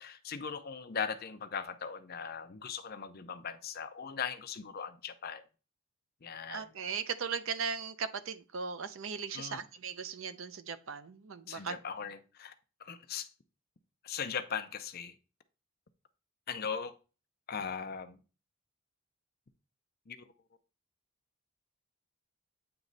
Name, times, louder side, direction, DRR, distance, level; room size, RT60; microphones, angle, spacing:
voice 1, 0.0-5.4 6.2-6.7 9.3-9.6 11.5-12.5 12.8-13.3 14.0-15.1 16.5-17.0 17.5-18.2 20.1-20.3, left 6 dB, 45° left, 0.5 m, -39 dB
voice 2, 6.5-11.8, right 6 dB, 60° right, 0.5 m, -38 dB
8.7 x 3.1 x 3.9 m
head